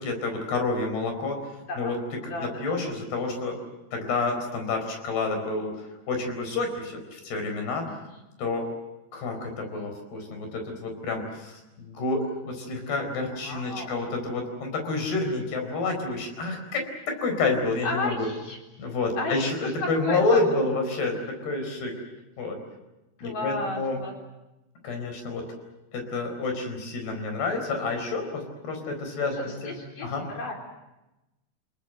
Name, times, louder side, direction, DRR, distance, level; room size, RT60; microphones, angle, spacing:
voice 1, 0.0-1.4 1.8-2.0 2.2-3.6 3.9-8.0 8.4-8.7 9.1-18.3 18.8-21.2 21.4-21.9 22.4-22.6 23.2-24.0 24.8-25.4 25.9-30.3, left 3 dB, 70° left, 5 dB, 6.4 m, -29 dB
voice 2, 1.7-2.8 7.9-8.2 13.3-14.0 17.8-18.6 19.2-20.4 23.2-24.1 29.2-30.5, left 2 dB, 50° left, 1 dB, 5.5 m, -34 dB
30.0 x 19.0 x 7.8 m, 1.0 s
omnidirectional pair, 4.8 m